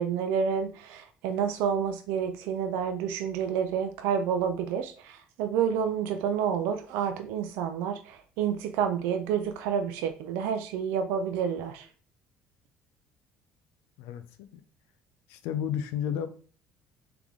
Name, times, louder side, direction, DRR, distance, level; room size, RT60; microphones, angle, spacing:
voice 1, 0.0-11.9, right 7 dB, 85° right, 0.4 m, -29 dB
voice 2, 15.3-16.3, left 9 dB, 85° left, 0.6 m, -31 dB
3.6 x 3.4 x 3.5 m
supercardioid pair, 90°, 4 cm